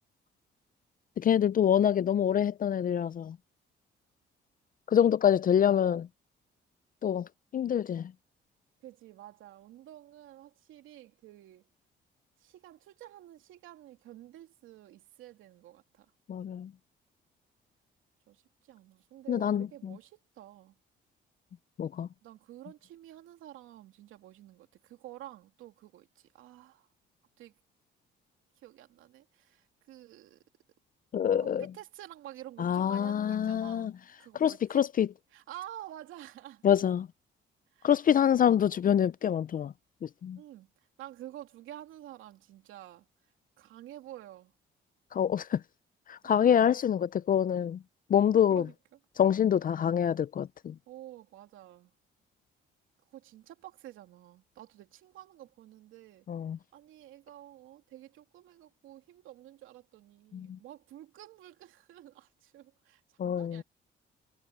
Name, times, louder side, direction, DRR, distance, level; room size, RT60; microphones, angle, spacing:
voice 1, 1.2-3.4 4.9-6.1 7.0-8.1 16.3-16.7 19.3-19.7 21.8-22.1 31.1-31.6 32.6-33.9 34.4-35.1 36.6-37.1 37.8-39.7 40.0-40.4 45.1-45.6 46.1-47.8 48.1-48.6 49.2-50.7 56.3-56.6 60.5-60.6 63.2-63.6, left 9 dB, 45° left, 0.5 m, -26 dB
voice 2, 8.8-11.7 12.4-16.1 18.3-20.8 22.2-26.9 27.4-27.6 28.5-30.4 31.4-33.9 34.2-34.9 35.3-36.6 37.7-38.0 40.3-44.5 46.2-46.6 48.5-49.0 50.9-51.9 53.0-56.3 56.7-63.6, right 13 dB, 90° right, 2.9 m, -50 dB
cardioid pair, 90°, 20 cm